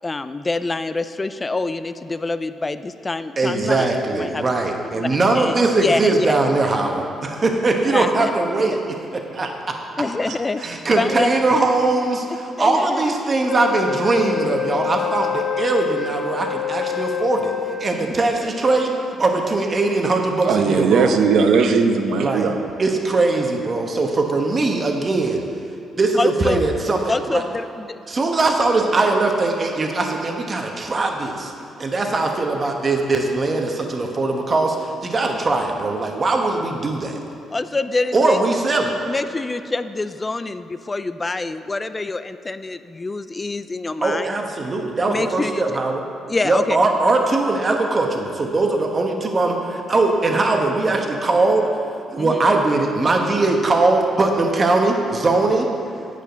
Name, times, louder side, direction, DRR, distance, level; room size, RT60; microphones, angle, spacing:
voice 1, 0.0-4.5 4.9-6.4 7.9-8.3 10.0-11.3 12.6-13.2 17.9-18.2 26.2-26.6 27.1-28.0 37.5-38.4 39.1-44.3 45.1-45.6 46.3-46.8 52.2-52.4, left 3 dB, 25° left, 12 dB, 0.3 m, -26 dB
voice 2, 3.4-8.8 9.1-9.8 10.6-17.5 17.8-18.9 19.2-21.1 22.2-22.5 22.8-25.4 26.0-27.4 28.1-31.5 31.8-37.2 38.1-38.9 44.0-46.0 46.4-51.7 52.1-55.7, right 3 dB, 35° right, 2 dB, 1.0 m, -20 dB
Wind instrument woodwind instrument, 13.5-18.2, left 9 dB, 40° left, 0.8 m, -27 dB
voice 3, 20.4-22.6, right 5 dB, 75° right, 6 dB, 0.7 m, -18 dB
9.1 x 4.9 x 6.8 m, 2.7 s
cardioid pair, 90°, 0 cm